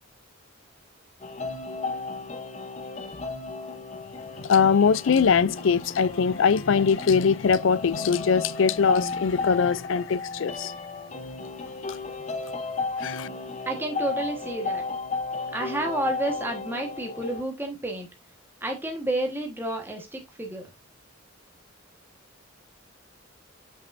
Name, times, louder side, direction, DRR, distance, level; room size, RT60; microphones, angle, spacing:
sound 1, 1.2-17.4, left 3 dB, 35° left, 0.9 m, -34 dB
voice 1, 4.5-10.7 13.0-13.3, left 6 dB, 70° left, 0.4 m, -22 dB
voice 2, 13.6-14.8 15.5-18.1 18.6-20.7, right 1 dB, 10° right, 1.3 m, -30 dB
8.5 x 5.7 x 2.6 m
head